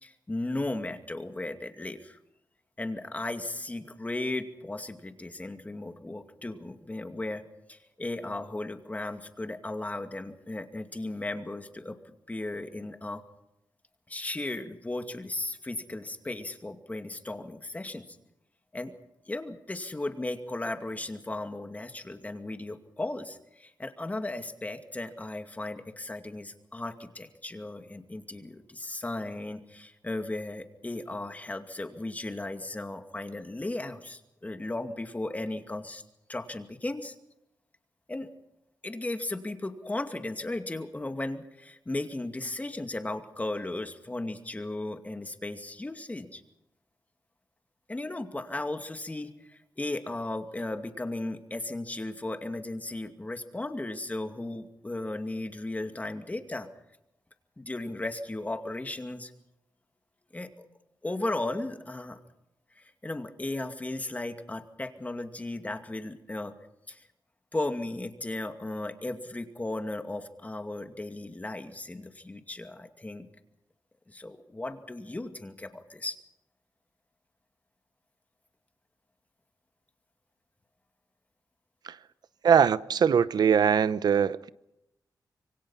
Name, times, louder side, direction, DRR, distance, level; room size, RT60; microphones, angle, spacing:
voice 1, 0.0-2.2 2.8-7.4 7.7-12.0 12.3-13.2 14.1-18.2 18.7-18.9 19.3-36.0 36.3-37.2 38.1-38.3 38.8-46.4 47.9-56.7 57.6-59.3 60.3-60.5 61.0-62.2 62.7-66.5 66.9-67.1 67.5-73.3 74.1-76.2, left 2 dB, 20° left, 2.3 m, -36 dB
voice 2, 82.4-84.5, right 7 dB, 75° right, 0.8 m, -22 dB
26.5 x 23.5 x 5.8 m
cardioid pair, 85°, 7 cm